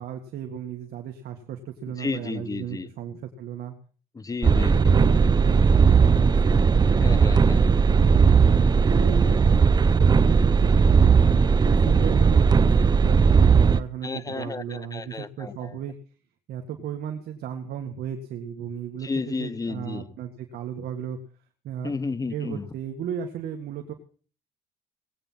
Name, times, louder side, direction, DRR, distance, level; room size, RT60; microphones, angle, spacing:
voice 1, 0.0-3.7 4.6-6.7 7.9-9.4 9.8-11.3 11.6-15.9 16.5-21.2 21.6-22.0 22.3-23.9, right 8 dB, 70° right, 2.0 m, -35 dB
voice 2, 2.0-2.9 4.1-5.0 7.0-7.7 14.0-15.7 19.0-20.1 21.8-22.7, left 4 dB, 20° left, 0.9 m, -32 dB
sound 1, 4.4-13.8, right 5 dB, 25° right, 0.6 m, -18 dB
19.5 x 9.2 x 5.8 m
cardioid pair, 110°, 17 cm